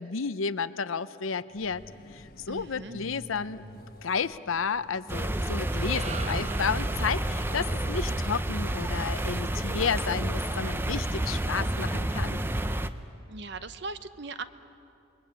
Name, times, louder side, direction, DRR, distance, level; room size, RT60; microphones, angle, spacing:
voice 1, 0.0-1.8 2.1-3.7 4.0-12.4, left 5 dB, 85° left, 15 dB, 0.7 m, -32 dB
Truck, 1.5-10.2, left 2 dB, 45° left, 1.2 m, -50 dB
voice 2, 2.5-3.1 13.3-14.4, right 3 dB, 55° right, 12 dB, 0.9 m, -39 dB
sound 1, 5.1-12.9, right 1 dB, 10° right, 0.6 m, -30 dB
sound 2, 5.4-9.8, right 4 dB, 35° right, 1.1 m, -43 dB
28.0 x 21.5 x 8.8 m, 2.7 s
head